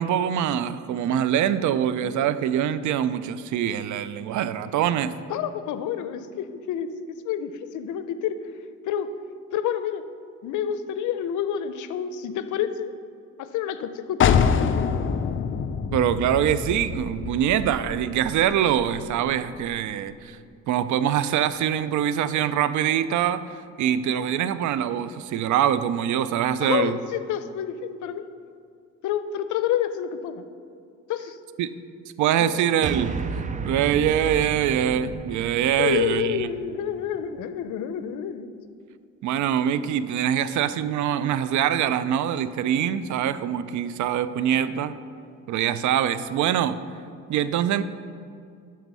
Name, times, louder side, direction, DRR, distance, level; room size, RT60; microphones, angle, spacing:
voice 1, 0.0-5.2 15.9-20.4 20.7-23.4 23.8-27.0 31.6-31.7 32.2-33.2 33.6-36.5 39.2-44.9 45.5-46.8 47.3-47.8, right 10 dB, 75° right, 14 dB, 0.5 m, -24 dB
voice 2, 5.3-8.4 8.8-9.1 9.5-10.0 10.4-12.9 13.4-14.5 26.6-28.3 29.0-30.4 31.1-31.4 32.4-32.5 35.8-38.5, left 9 dB, 80° left, 11 dB, 0.6 m, -28 dB
sound 1, 14.2-19.8, left 7 dB, 40° left, 0.5 m, -26 dB
sound 2, 32.8-37.3, right 5 dB, 25° right, 0.4 m, -33 dB
12.0 x 4.5 x 5.4 m, 2.3 s
cardioid pair, 90°, 30 cm